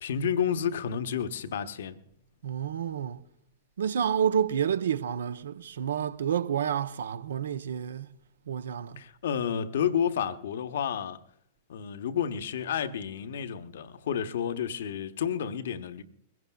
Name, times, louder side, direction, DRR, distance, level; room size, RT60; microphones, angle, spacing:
voice 1, 0.0-2.0 9.0-11.2 11.7-16.0, left 8 dB, 65° left, 1.0 m, -30 dB
voice 2, 2.4-3.2 3.8-8.1 8.5-9.0, right 8 dB, 70° right, 0.7 m, -29 dB
22.0 x 17.0 x 2.3 m
figure-of-eight pair, 100°, 0 cm